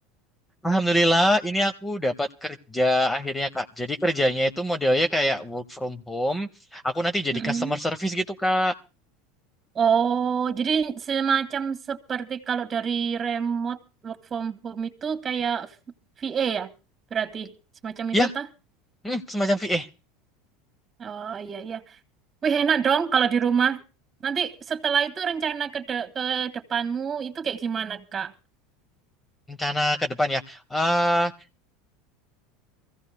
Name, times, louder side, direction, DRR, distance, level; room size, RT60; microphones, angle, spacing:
voice 1, 0.6-8.7 18.1-18.3 19.0-19.9 29.5-31.3, equal, 10° left, 0.7 m, -24 dB
voice 2, 7.3-7.8 9.7-13.8 14.0-15.7 16.2-16.7 17.1-17.5 17.8-18.4 21.0-21.8 22.4-23.8 24.2-28.3, right 7 dB, 30° right, 1.7 m, -26 dB
24.0 x 15.5 x 2.2 m
supercardioid pair, 110°, 0 cm